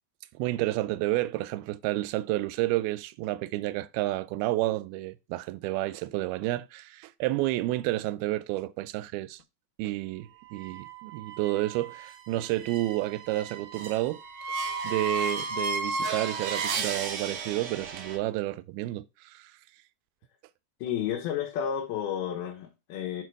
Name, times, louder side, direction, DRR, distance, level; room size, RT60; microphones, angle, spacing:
voice 1, 0.4-9.4 9.8-14.2 14.8-19.5, right 17 dB, 90° right, 2.5 m, -30 dB
sound 1, 10.5-18.2, right 3 dB, 75° right, 1.4 m, -34 dB
voice 2, 20.8-23.2, left 9 dB, 90° left, 3.1 m, -31 dB
6.5 x 4.6 x 4.6 m
omnidirectional pair, 4.3 m